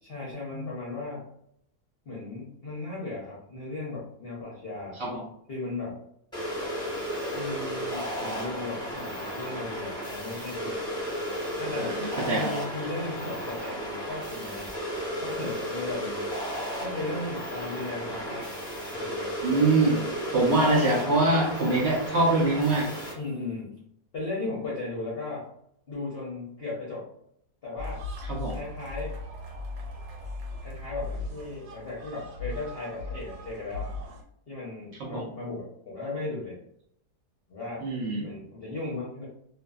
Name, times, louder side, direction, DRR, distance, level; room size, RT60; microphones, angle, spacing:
voice 1, 0.0-1.2 2.1-5.0 5.5-6.0 7.3-10.8 11.6-12.0 12.3-14.7 15.2-16.3 16.8-18.5 18.9-19.3 23.1-23.8 24.1-25.5 25.9-27.1 27.6-28.0 28.5-29.2 30.6-33.9 34.5-36.6 37.5-37.9 38.2-39.3, left 2 dB, 55° left, -6 dB, 0.7 m, -36 dB
sound 1, 6.3-23.1, equal, 5° left, 0.8 m, -34 dB
voice 2, 11.7-12.5 19.4-20.0 20.3-22.9 28.3-28.6 35.0-35.3 37.8-38.3, right 2 dB, 60° right, -3 dB, 0.7 m, -24 dB
sound 2, 27.8-34.2, left 2 dB, 85° right, 1.3 m, -38 dB
2.5 x 2.5 x 2.3 m, 0.70 s
omnidirectional pair, 1.6 m